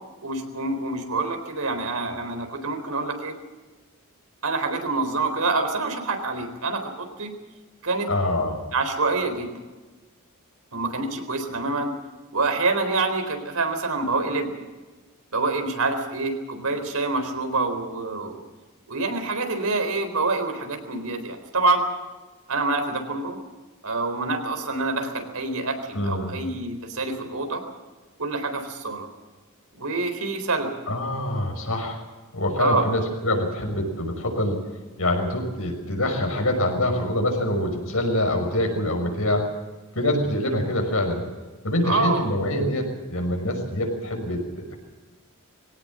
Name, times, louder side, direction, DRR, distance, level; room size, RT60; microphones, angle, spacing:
voice 1, 0.2-3.4 4.4-7.3 7.8-8.1 8.7-9.5 10.7-11.9 12.3-14.5 15.3-18.4 18.9-21.8 22.5-23.4 23.8-25.8 26.0-27.6 28.2-29.1 29.8-30.7 32.6-32.9 41.8-42.2, right 3 dB, 80° right, 6 dB, 4.1 m, -26 dB
voice 2, 8.1-8.6 25.9-26.4 30.9-32.0 32.3-34.6 35.0-39.5 39.9-41.2 41.6-44.7, left 1 dB, 70° left, 3 dB, 5.9 m, -25 dB
22.0 x 17.5 x 7.6 m, 1.3 s
head